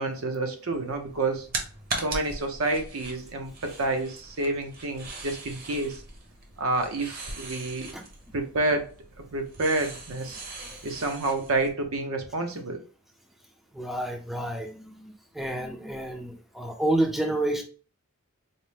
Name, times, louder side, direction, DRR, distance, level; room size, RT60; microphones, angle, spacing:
voice 1, 0.0-1.5 2.0-6.0 6.6-7.9 8.3-10.4 10.8-12.8, right 2 dB, 75° right, 4 dB, 0.7 m, -29 dB
sound 1, 0.7-11.7, right 2 dB, 45° right, 0.8 m, -40 dB
voice 2, 13.7-17.6, right 1 dB, ahead, 2 dB, 0.4 m, -30 dB
4.1 x 2.0 x 3.2 m, 0.38 s
head